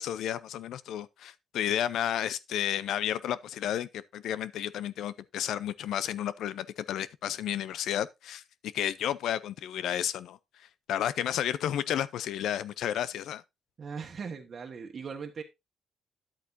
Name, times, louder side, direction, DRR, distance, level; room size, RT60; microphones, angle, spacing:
voice 1, 0.0-8.4 8.7-10.4 10.9-13.4, left 10 dB, 80° left, 0.6 m, -32 dB
voice 2, 13.8-15.4, right 5 dB, 45° right, 1.4 m, -39 dB
10.5 x 8.3 x 2.7 m
cardioid pair, 90°, 0 cm